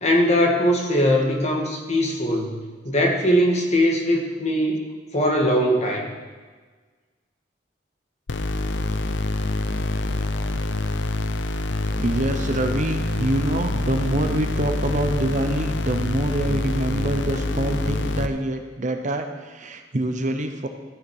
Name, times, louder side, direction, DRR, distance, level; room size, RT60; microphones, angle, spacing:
voice 1, 0.0-2.5 2.8-4.8 5.1-6.1, equal, 40° left, 0 dB, 1.7 m, -20 dB
sound 1, 8.3-18.3, left 2 dB, 85° left, 0.6 m, -26 dB
voice 2, 12.0-20.7, right 1 dB, 45° right, 6 dB, 0.8 m, -25 dB
13.5 x 6.8 x 4.8 m, 1.4 s
head